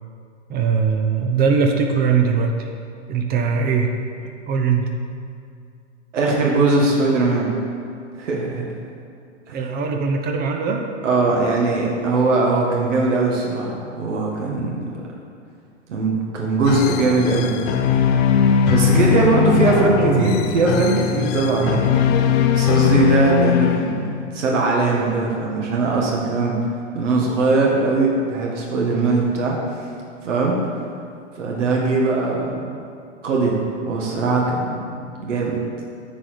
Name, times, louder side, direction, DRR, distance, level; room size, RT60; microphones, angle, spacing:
voice 1, 0.5-2.7 3.1-3.9 4.2-4.9 9.5-10.9 19.7-20.3 21.6-21.8, right 5 dB, 25° right, 4 dB, 0.8 m, -21 dB
voice 2, 6.1-7.5 8.2-8.7 9.5-9.6 11.0-14.9 15.9-17.6 18.7-19.9 20.2-21.8 22.5-24.0 24.3-26.6 26.9-29.6 30.2-30.6 31.4-32.8 33.2-35.6, right 3 dB, 75° right, -2 dB, 1.9 m, -20 dB
sound 1, 16.6-24.3, left 7 dB, 30° left, 0.5 m, -19 dB
9.6 x 4.8 x 7.7 m, 2.4 s
hypercardioid pair, 125°, 37 cm